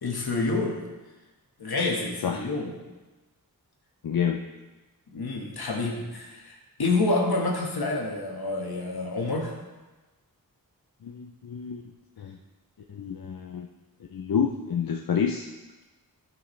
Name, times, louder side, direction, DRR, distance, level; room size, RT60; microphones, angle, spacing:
voice 1, 0.0-0.8 1.6-2.7 5.1-9.5, left 3 dB, 85° left, 0 dB, 1.6 m, -28 dB
voice 2, 4.0-4.4 11.0-11.8 12.2-12.4 12.9-13.7 14.1-15.5, left 7 dB, 70° left, 2 dB, 0.6 m, -28 dB
12.5 x 6.3 x 3.3 m, 1.2 s
wide cardioid pair, 85°, 36 cm